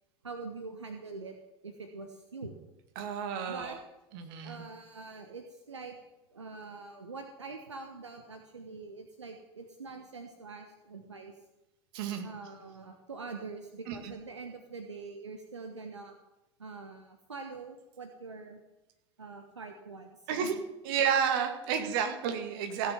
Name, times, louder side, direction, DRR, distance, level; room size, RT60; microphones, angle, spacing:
voice 1, 0.2-1.4 1.6-2.6 3.5-3.8 4.4-6.0 6.3-11.3 12.2-16.2 16.6-18.6 19.2-20.5 21.7-21.8, right 4 dB, 80° right, 5 dB, 1.1 m, -44 dB
voice 2, 3.0-3.8 4.1-4.6 11.9-12.3 13.9-14.0 20.3-20.6 20.8-22.9, right 7 dB, 55° right, 6 dB, 1.9 m, -31 dB
16.0 x 6.8 x 7.1 m, 0.98 s
figure-of-eight pair, 80°, 15 cm